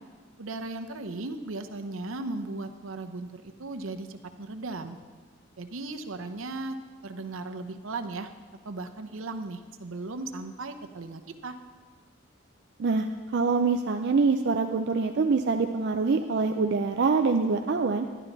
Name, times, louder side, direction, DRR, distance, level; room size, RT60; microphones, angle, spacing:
voice 1, 0.4-5.0 5.6-6.8 7.0-8.3 8.6-11.5, right 2 dB, 80° right, 7 dB, 0.8 m, -36 dB
voice 2, 13.3-18.1, right 4 dB, 55° right, 4 dB, 0.4 m, -25 dB
11.5 x 11.0 x 4.0 m, 1.5 s
head